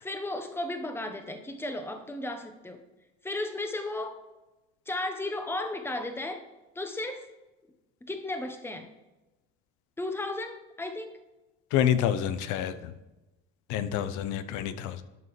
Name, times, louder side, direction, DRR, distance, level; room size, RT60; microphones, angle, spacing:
voice 1, 0.0-2.8 3.2-4.2 4.9-6.4 6.7-7.3 8.0-8.9 10.0-11.2, left 2 dB, 5° left, 6 dB, 0.9 m, -34 dB
voice 2, 11.7-12.9 13.7-15.0, left 10 dB, 65° left, 12 dB, 0.7 m, -28 dB
12.0 x 5.5 x 3.2 m, 1.0 s
supercardioid pair, 80°, 31 cm